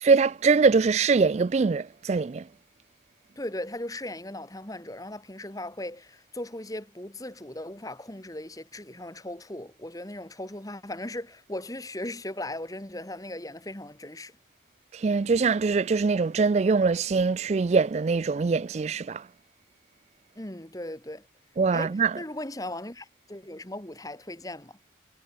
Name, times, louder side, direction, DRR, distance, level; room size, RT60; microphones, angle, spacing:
voice 1, 0.0-2.4 14.9-19.2 21.6-22.1, right 4 dB, 35° right, 0.3 m, -23 dB
voice 2, 3.4-14.3 20.4-21.3 21.7-24.8, left 1 dB, 20° left, 2.2 m, -38 dB
head